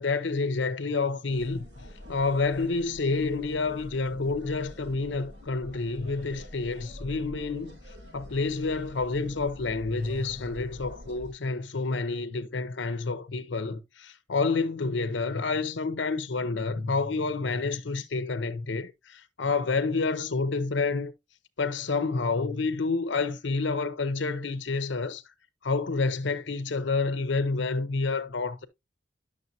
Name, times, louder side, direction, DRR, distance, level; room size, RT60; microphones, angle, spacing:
voice 1, 0.0-1.6 2.1-7.7 8.1-21.1 21.6-25.2 25.6-28.7, left 3 dB, 80° left, 0.7 m, -29 dB
sound 1, 1.3-11.3, left 1 dB, 70° right, 5.2 m, -46 dB
10.5 x 6.6 x 2.7 m
head